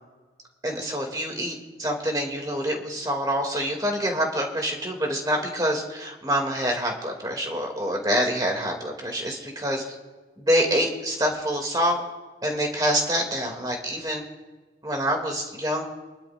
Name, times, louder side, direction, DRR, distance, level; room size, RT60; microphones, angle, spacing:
voice 1, 0.6-9.8 10.4-12.0 12.4-14.2 14.8-15.8, equal, 20° right, 2 dB, 2.3 m, -26 dB
25.0 x 11.5 x 2.5 m, 1.3 s
head